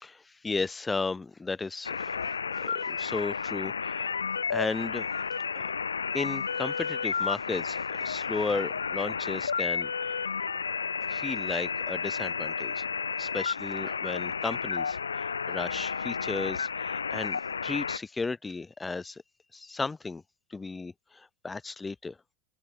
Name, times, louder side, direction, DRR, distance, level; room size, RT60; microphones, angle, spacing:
voice 1, 0.0-2.1 2.6-4.1 4.5-5.1 5.5-5.7 6.1-10.2 11.1-12.8 13.2-19.2 19.5-20.2 20.5-22.1, left 3 dB, 15° left, 0.9 m, -34 dB
sound 1, 1.8-18.0, left 6 dB, 80° left, 0.5 m, -32 dB
open air
figure-of-eight pair, 80°, 0 cm